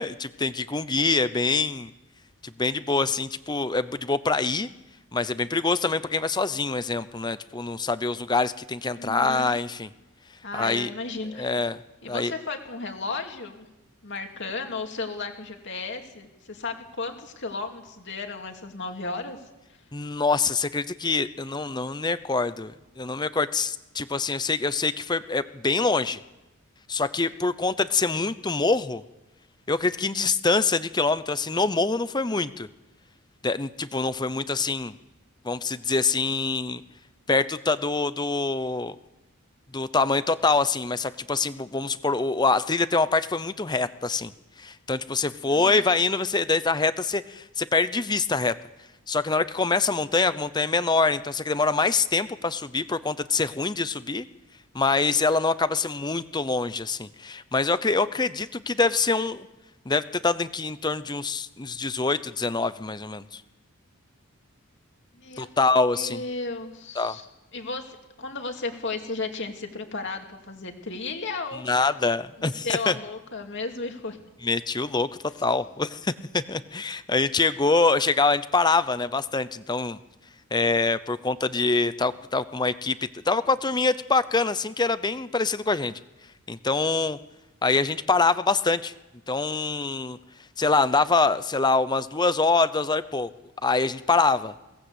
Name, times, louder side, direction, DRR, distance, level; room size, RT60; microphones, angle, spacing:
voice 1, 0.0-1.9 2.4-4.7 5.1-9.9 10.5-10.9 11.4-11.8 12.1-12.3 19.9-26.2 26.9-29.0 29.7-32.7 33.4-34.9 35.4-36.8 37.3-38.9 39.7-44.3 44.6-48.5 49.1-54.3 54.7-59.5 59.9-63.4 65.4-66.2 67.0-67.2 71.6-72.9 74.4-75.1 75.4-80.0 80.5-85.9 86.5-87.2 87.6-88.9 89.3-90.2 90.6-93.3 93.6-94.5, left 3 dB, 20° left, 14 dB, 0.7 m, -25 dB
voice 2, 8.9-9.5 10.4-11.5 12.0-13.7 14.0-19.4 45.4-45.8 65.1-65.5 65.9-67.3 67.5-71.9 72.4-74.2, left 3 dB, 55° left, 4 dB, 2.6 m, -34 dB
22.0 x 18.0 x 8.2 m, 1.0 s
head